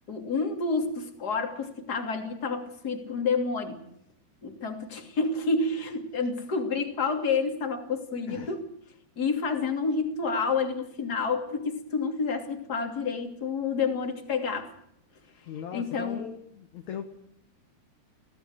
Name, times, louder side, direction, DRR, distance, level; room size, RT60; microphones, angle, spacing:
voice 1, 0.1-3.8 4.4-8.6 9.2-14.7 15.7-16.2, left 4 dB, 25° left, 4 dB, 2.8 m, -29 dB
voice 2, 8.3-8.6 15.5-17.1, left 8 dB, 60° left, 7 dB, 2.1 m, -39 dB
24.5 x 17.5 x 6.5 m, 0.76 s
omnidirectional pair, 4.6 m